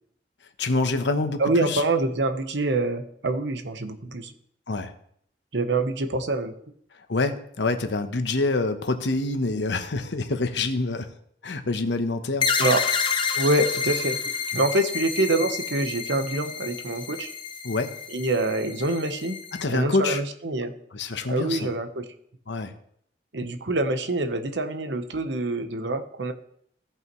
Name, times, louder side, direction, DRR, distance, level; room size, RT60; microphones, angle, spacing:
voice 1, 0.6-1.8 4.7-4.9 6.9-11.1 11.4-12.5 17.6-17.9 19.5-20.2 20.9-21.7 22.5-22.7, left 3 dB, 85° left, 8 dB, 0.9 m, -26 dB
voice 2, 1.4-4.3 5.5-6.5 12.6-12.8 13.3-14.2 14.5-17.3 18.1-19.4 19.7-20.7 21.3-22.0 23.3-26.3, right 2 dB, 85° right, 7 dB, 1.0 m, -25 dB
sound 1, 12.4-19.6, left 6 dB, 25° left, 0.8 m, -29 dB
16.5 x 5.7 x 3.1 m, 0.66 s
head